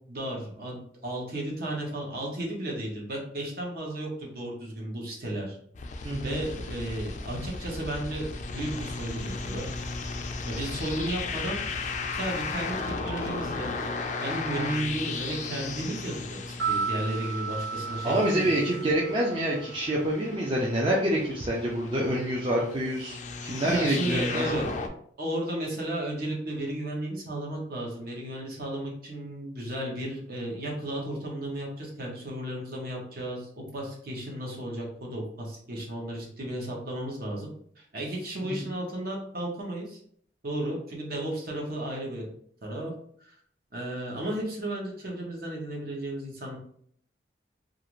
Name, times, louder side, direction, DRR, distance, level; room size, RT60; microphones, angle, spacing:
voice 1, 0.1-5.6 6.2-8.3 8.5-9.7 10.5-11.6 12.1-13.7 14.2-18.6 23.6-24.6 25.2-37.5 37.8-40.0 40.4-42.3 42.6-42.9 43.2-43.4 43.7-46.6, right 1 dB, 55° right, -1 dB, 0.8 m, -34 dB
sound 1, 5.7-24.9, left 4 dB, 40° left, 0.3 m, -36 dB
voice 2, 6.0-6.4 14.5-14.6 18.0-24.4 38.4-38.7, right 1 dB, 30° right, -4 dB, 0.4 m, -27 dB
sound 2, 16.4-20.6 20.9-21.0, right 5 dB, 90° right, 1.2 m, -34 dB
2.5 x 2.4 x 3.0 m, 0.62 s
head